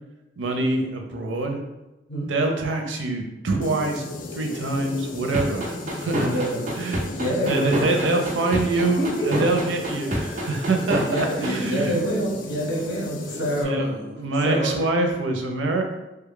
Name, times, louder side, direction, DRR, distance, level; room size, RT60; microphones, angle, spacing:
voice 1, 0.4-1.6 2.3-4.0 4.3-6.4 6.8-12.0 13.6-15.8, right 2 dB, 90° right, 3 dB, 0.6 m, -25 dB
sound 1, 3.6-13.6, left 3 dB, 45° left, 0.3 m, -36 dB
sound 2, 5.3-11.5, right 1 dB, 40° right, 0.6 m, -26 dB
voice 2, 6.1-6.7 7.1-7.7 9.0-9.5 11.1-13.9 14.4-14.7, equal, 70° left, -4 dB, 1.2 m, -26 dB
3.2 x 2.3 x 3.6 m, 0.99 s
head